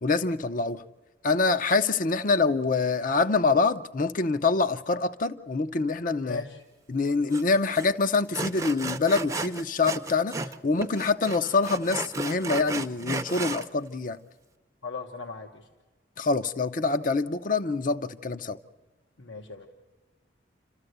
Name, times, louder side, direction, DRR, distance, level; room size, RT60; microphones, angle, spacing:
voice 1, 0.0-0.8 1.2-6.4 6.9-14.2 16.2-18.6, left 4 dB, 45° left, 0.6 m, -25 dB
voice 2, 6.2-6.6 14.8-15.7 19.2-19.7, left 4 dB, 80° left, 1.2 m, -39 dB
Sawing, 7.3-7.4 7.7-7.9 8.3-10.6 10.8-13.7, right 3 dB, 15° right, 0.6 m, -34 dB
28.0 x 13.5 x 8.0 m
head